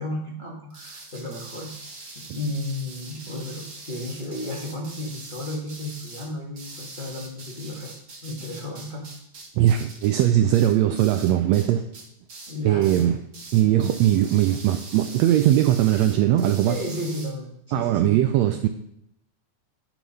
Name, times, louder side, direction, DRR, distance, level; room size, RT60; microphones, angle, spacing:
voice 1, 0.0-1.7 2.1-7.9 8.2-9.1 12.5-13.1 16.7-18.1, left 1 dB, 35° left, -3 dB, 0.8 m, -33 dB
sound 1, 0.7-11.7 11.9-12.5 12.8-13.1 13.3-17.3, right 3 dB, 40° right, 1.5 m, -42 dB
voice 2, 9.6-11.8 12.7-13.2 13.5-16.8 17.7-18.7, right 12 dB, 80° right, 7 dB, 1.6 m, -20 dB
10.0 x 4.6 x 5.4 m, 0.77 s
omnidirectional pair, 3.5 m